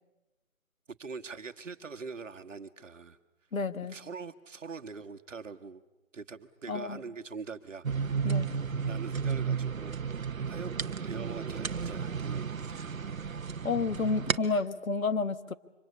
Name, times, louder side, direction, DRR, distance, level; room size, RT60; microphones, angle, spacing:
voice 1, 1.0-3.2 3.9-5.8 6.1-8.2 8.9-10.0 10.5-10.7 11.0-12.9, right 5 dB, 65° right, 7 dB, 1.6 m, -43 dB
voice 2, 3.5-4.0 6.7-7.0 8.2-8.5 13.6-15.5, left 4 dB, 90° left, 13 dB, 1.5 m, -30 dB
sound 1, 7.8-14.4, right 6 dB, 85° right, 1.1 m, -33 dB
25.5 x 25.0 x 8.4 m, 1.0 s
hypercardioid pair, 170°, 40 cm